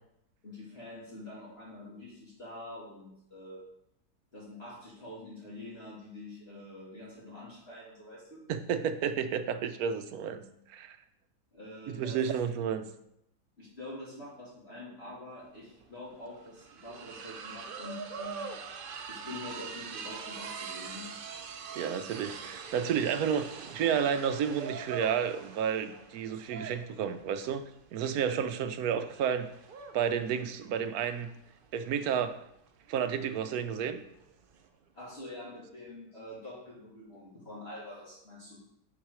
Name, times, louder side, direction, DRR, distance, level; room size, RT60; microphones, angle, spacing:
voice 1, 0.4-3.6 4.3-8.4 11.5-12.2 13.6-18.5 19.1-21.1 26.5-26.6 34.9-38.6, left 1 dB, 40° left, -7 dB, 2.2 m, -46 dB
voice 2, 8.5-11.0 11.9-12.9 21.8-27.6 27.9-29.5 29.9-31.3 31.7-32.4 32.9-34.0, right 8 dB, 70° right, 10 dB, 1.1 m, -31 dB
sound 1, 15.5-15.6 15.8-34.7, right 6 dB, 85° right, 0.4 m, -44 dB
7.2 x 4.8 x 4.8 m, 0.76 s
omnidirectional pair, 1.7 m